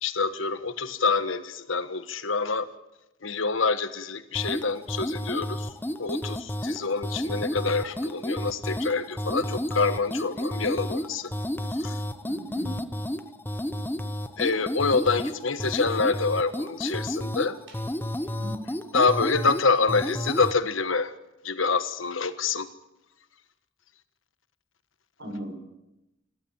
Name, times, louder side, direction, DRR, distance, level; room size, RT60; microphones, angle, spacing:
voice 1, 0.0-2.7 3.2-5.7 6.0-11.3 11.8-12.0 14.4-17.6 18.9-21.1 21.4-22.7, left 4 dB, 75° left, 11 dB, 1.4 m, -26 dB
sound 1, 4.3-20.6, equal, 10° left, 0.8 m, -32 dB
voice 2, 12.2-12.8 18.3-18.8 25.2-25.5, equal, 60° right, 4 dB, 7.0 m, -37 dB
28.5 x 12.5 x 8.9 m, 0.93 s
head